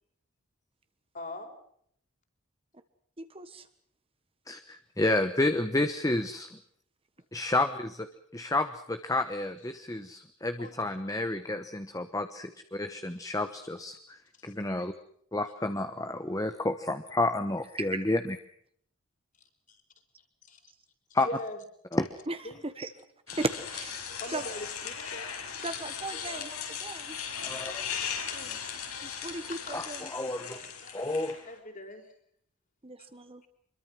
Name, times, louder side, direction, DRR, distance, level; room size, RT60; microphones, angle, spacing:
voice 1, 1.1-1.5 10.6-10.8 14.4-14.5 19.7-19.8 20.4-20.7 21.1-21.6 21.9-22.0 22.4-22.7 24.2-25.3 28.3-28.7 29.7-29.8 30.5-32.1, left 1 dB, 35° left, 5 dB, 4.3 m, -42 dB
voice 2, 3.2-3.7 17.8-18.1 22.3-22.4 22.6-22.9 23.3-24.0 24.3-24.4 25.6-27.2 29.0-30.0 32.8-33.4, right 2 dB, 25° right, 9 dB, 1.4 m, -36 dB
voice 3, 4.5-6.5 7.3-8.1 8.3-14.9 15.3-18.4 21.1-21.3 21.9-22.0 27.4-27.7 29.7-29.8 30.1-30.6 30.9-31.3, left 2 dB, 15° left, 8 dB, 1.1 m, -30 dB
sound 1, 23.3-31.5, left 7 dB, 80° left, 5.9 m, -38 dB
25.5 x 22.5 x 6.2 m, 0.66 s
head